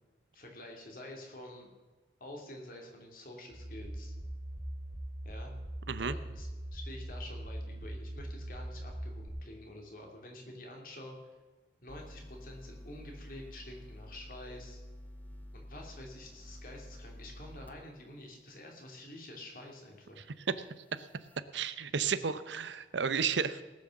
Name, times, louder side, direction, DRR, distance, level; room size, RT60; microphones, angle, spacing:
voice 1, 0.3-1.7 2.2-4.1 5.2-5.5 6.0-11.2 11.8-14.8 15.5-20.3, left 1 dB, 50° left, 1 dB, 2.9 m, -48 dB
sound 1, 3.5-9.3, right 1 dB, 30° right, 1.6 m, -41 dB
sound 2, 11.9-17.8 18.2-18.3 21.0-21.4, left 1 dB, 10° left, 0.8 m, -49 dB
voice 2, 21.5-23.6, right 6 dB, 90° right, 14 dB, 0.7 m, -32 dB
18.5 x 6.4 x 7.2 m, 1.3 s
head